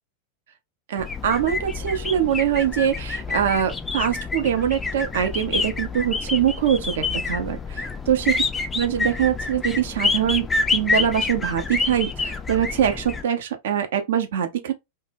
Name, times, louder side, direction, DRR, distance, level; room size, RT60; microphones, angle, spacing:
voice 1, 0.9-8.4 8.7-10.5 10.7-14.7, right 9 dB, 60° right, 0.5 m, -23 dB
sound 1, 1.0-13.2, left 4 dB, 15° left, 0.3 m, -27 dB
2.1 x 2.1 x 3.2 m
figure-of-eight pair, 90°, 0 cm